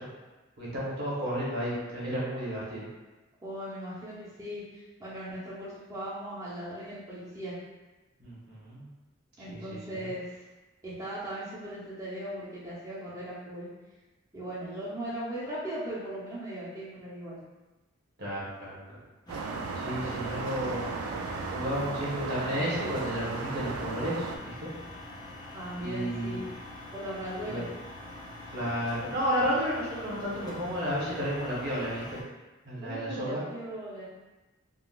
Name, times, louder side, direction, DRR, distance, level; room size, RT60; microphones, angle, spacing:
voice 1, 0.6-2.9 8.2-8.9 9.5-10.1 18.2-19.0 19.8-20.9 21.5-24.7 25.8-26.3 27.4-27.6 28.5-32.2 32.6-33.4, equal, 55° right, -7 dB, 1.1 m, -32 dB
voice 2, 3.4-7.6 9.4-10.3 10.8-13.7 14.3-17.4 25.5-26.5 26.9-27.7 32.8-34.0, right 1 dB, 15° right, -11 dB, 0.7 m, -38 dB
sound 1, 19.3-32.2, left 1 dB, 20° left, 0.4 m, -44 dB
sound 2, 19.3-24.4, right 4 dB, 90° right, 0.3 m, -36 dB
3.7 x 2.3 x 2.3 m, 1.1 s
head